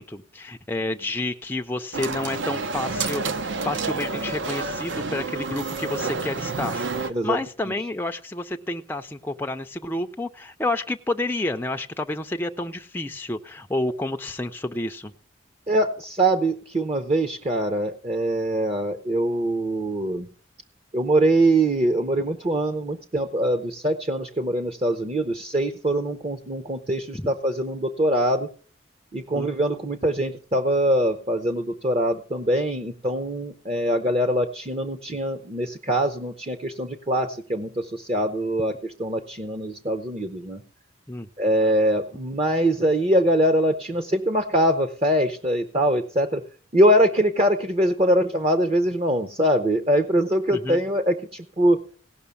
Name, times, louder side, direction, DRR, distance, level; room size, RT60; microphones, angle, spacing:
voice 1, 0.0-15.1 27.1-27.3 29.3-29.5 41.1-41.3 50.5-50.8, left 2 dB, 10° left, 4 dB, 0.5 m, -30 dB
sound 1, 1.9-7.1, right 4 dB, 65° right, 0.8 m, -29 dB
voice 2, 15.7-20.3 20.9-28.5 29.1-38.7 39.0-40.6 41.4-46.4 46.7-51.8, right 1 dB, 30° right, 6 dB, 0.8 m, -23 dB
17.0 x 6.0 x 7.0 m, 0.42 s
head